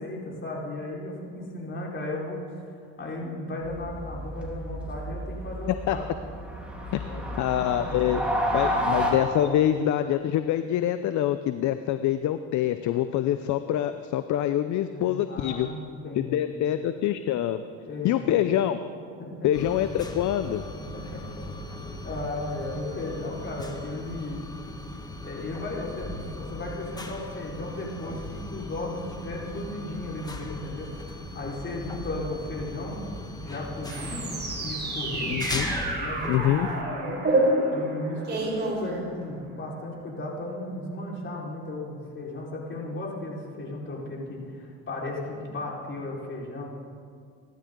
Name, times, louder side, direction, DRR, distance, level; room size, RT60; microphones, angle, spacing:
voice 1, 0.0-6.0 6.8-7.2 14.9-16.6 17.9-18.4 19.2-19.5 20.7-21.7 22.0-24.6 25.2-33.0 33.4-35.4 36.0-37.2 37.7-46.7, left 2 dB, 35° left, -4 dB, 4.7 m, -35 dB
sound 1, 3.6-9.1, equal, 5° right, 3.7 m, -30 dB
voice 2, 7.4-8.2 8.5-15.7 16.2-17.6 18.0-18.8 19.4-20.6 35.3-35.7 36.3-36.7, left 11 dB, 60° left, 10 dB, 0.7 m, -25 dB
sound 2, 19.5-36.8, left 1 dB, 10° left, 1.5 m, -38 dB
sound 3, 33.9-39.5, right 1 dB, 30° right, 4.8 m, -28 dB
25.5 x 12.0 x 3.9 m, 2.2 s
supercardioid pair, 90°, 33 cm